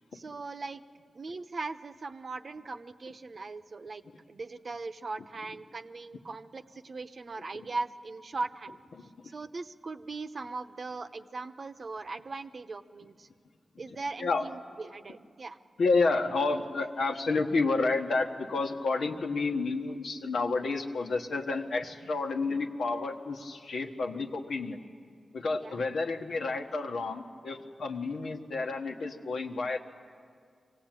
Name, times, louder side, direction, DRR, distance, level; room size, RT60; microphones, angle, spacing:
voice 1, 0.1-0.8 1.1-4.0 4.3-8.8 9.2-13.3 13.8-15.6 25.6-25.7, right 3 dB, 55° right, 9 dB, 0.8 m, -39 dB
voice 2, 13.9-14.5 15.8-24.8 25.3-29.8, left 3 dB, 90° left, 3 dB, 1.4 m, -30 dB
24.5 x 16.5 x 9.1 m, 2.1 s
cardioid pair, 65°, 0 cm